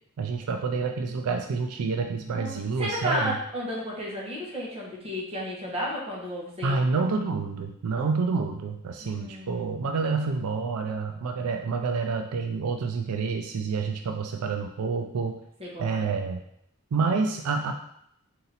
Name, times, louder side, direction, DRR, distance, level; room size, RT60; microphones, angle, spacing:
voice 1, 0.2-3.3 6.6-15.4 15.8-16.4 16.9-17.7, right 4 dB, 85° right, 4 dB, 0.4 m, -28 dB
voice 2, 2.8-7.1 9.0-9.7 15.6-16.1, equal, 25° right, -5 dB, 1.3 m, -33 dB
3.9 x 2.8 x 4.0 m, 0.72 s
head